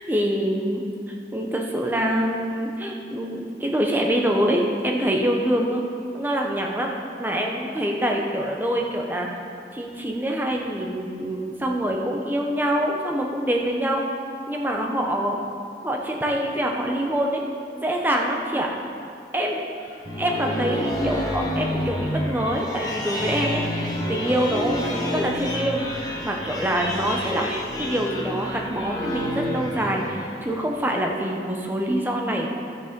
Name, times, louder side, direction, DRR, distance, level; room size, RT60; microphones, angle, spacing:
voice 1, 0.1-0.8 1.3-5.8 6.1-6.9 7.2-9.3 9.7-14.0 14.5-15.4 15.8-17.4 17.7-18.7 19.3-19.7 20.2-27.5 27.8-32.5, equal, 10° right, 0 dB, 0.9 m, -25 dB
sound 1, 19.8-30.6, equal, 20° left, 1.1 m, -29 dB
13.0 x 6.8 x 5.2 m, 2.4 s
head